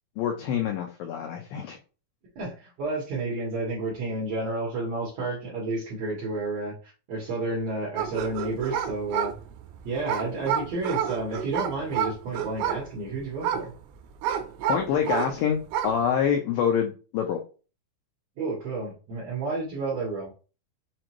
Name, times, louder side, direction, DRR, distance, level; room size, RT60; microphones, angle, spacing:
voice 1, 0.2-1.8 14.7-17.4, left 8 dB, 90° left, 3 dB, 1.9 m, -26 dB
voice 2, 2.4-9.3 9.8-13.7 18.4-20.3, right 3 dB, 65° right, -6 dB, 1.7 m, -31 dB
sound 1, 8.0-15.4 15.6-16.1, right 9 dB, 80° right, 2.2 m, -30 dB
6.0 x 2.6 x 3.0 m, 0.35 s
omnidirectional pair, 4.7 m